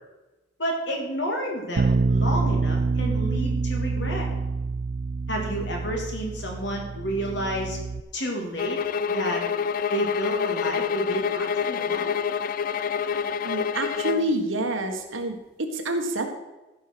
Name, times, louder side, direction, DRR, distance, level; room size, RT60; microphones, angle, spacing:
voice 1, 0.6-4.3 5.3-7.8 8.1-8.8 9.1-9.4 9.9-12.1, right 1 dB, 60° left, 0 dB, 2.7 m, -30 dB
Bass guitar, 1.8-8.0, right 4 dB, 45° right, 0.4 m, -26 dB
sound 1, 8.6-14.3, left 7 dB, 45° left, 0.3 m, -27 dB
voice 2, 13.4-16.3, right 1 dB, 85° right, 4 dB, 1.6 m, -28 dB
14.0 x 5.7 x 6.2 m, 1.1 s
head